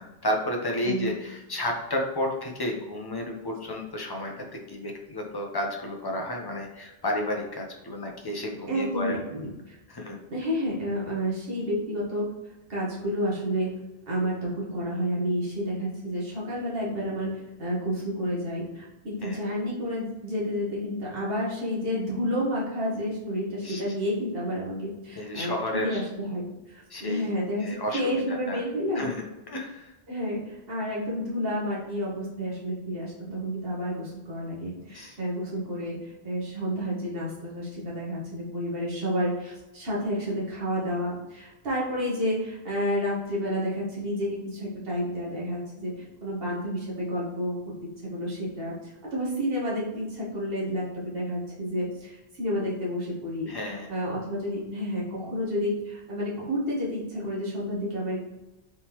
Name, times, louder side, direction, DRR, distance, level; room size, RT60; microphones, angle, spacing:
voice 1, 0.0-9.2 9.9-10.2 19.2-19.4 23.6-23.8 25.2-26.0 26.9-27.3 27.6-28.6 28.9-29.9 34.9-35.2 53.5-53.9, left 1 dB, 25° left, 1 dB, 0.7 m, -32 dB
voice 2, 8.7-9.8 10.3-12.3 12.7-13.8 14.1-29.1 30.1-47.5 48.0-53.5 53.9-58.2, equal, 65° right, -5 dB, 1.7 m, -30 dB
4.4 x 3.6 x 3.0 m, 1.0 s
omnidirectional pair, 1.1 m